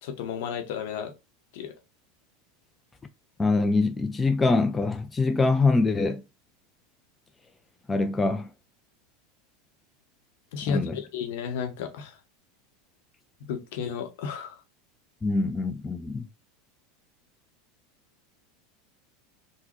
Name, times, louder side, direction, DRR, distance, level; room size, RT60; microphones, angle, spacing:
voice 1, 0.0-1.1 1.5-1.7 10.5-12.2 13.4-14.6, left 7 dB, 70° left, 0.8 m, -33 dB
voice 2, 3.4-6.2 7.9-8.5 10.7-11.0 15.2-16.3, left 3 dB, 15° left, 0.4 m, -24 dB
3.9 x 2.1 x 3.0 m
hypercardioid pair, 105°, 0 cm